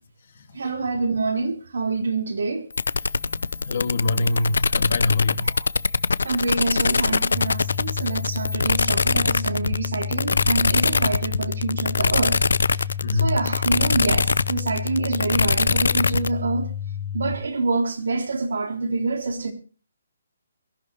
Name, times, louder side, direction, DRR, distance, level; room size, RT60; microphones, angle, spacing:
voice 1, 0.5-2.7 5.5-5.7 6.2-12.4 12.7-12.8 13.1-16.7 17.1-19.5, right 3 dB, 70° right, 3.7 m, -26 dB
sound 1, 2.7-16.3, left 4 dB, 80° left, 0.7 m, -23 dB
voice 2, 3.0-5.6 13.0-13.3, left 3 dB, 40° left, 1.8 m, -25 dB
sound 2, 7.3-17.3, left 9 dB, 20° right, 1.7 m, -31 dB
23.0 x 14.5 x 3.0 m
hypercardioid pair, 180°, 0 cm